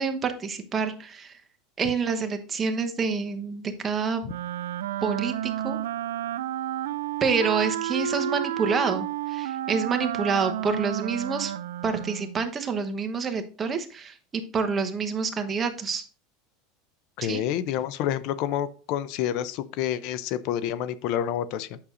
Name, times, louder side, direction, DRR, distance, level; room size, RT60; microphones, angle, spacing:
voice 1, 0.0-1.4 1.8-4.2 5.0-5.8 7.2-11.5 11.8-16.0 17.2-17.4, right 5 dB, 25° right, 7 dB, 1.0 m, -27 dB
Wind instrument woodwind instrument, 4.3-12.5, right 12 dB, 85° right, 0.4 m, -31 dB
voice 2, 17.2-21.8, left 11 dB, 60° left, 15 dB, 0.5 m, -28 dB
8.5 x 6.3 x 2.6 m, 0.39 s
supercardioid pair, 115°, 0 cm